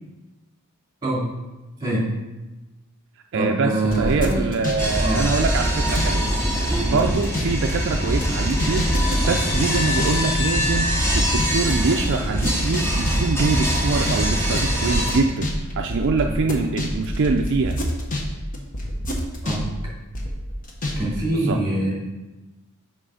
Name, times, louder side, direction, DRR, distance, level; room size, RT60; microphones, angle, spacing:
voice 1, 1.8-2.1 3.3-4.5 5.0-5.3 6.8-7.0 16.3-16.4 19.4-19.7 21.0-21.9, right 1 dB, 20° right, -4 dB, 2.5 m, -24 dB
voice 2, 3.3-6.3 6.8-15.5 15.8-17.7 21.3-21.6, right 4 dB, 55° right, 3 dB, 0.4 m, -24 dB
sound 1, 3.9-6.2 6.4-18.3 18.5-21.0 21.2-21.3, equal, 40° left, 1.1 m, -27 dB
train at wah kee, 4.8-15.2, equal, 10° left, 1.1 m, -23 dB
6.3 x 5.0 x 4.9 m, 1.1 s
head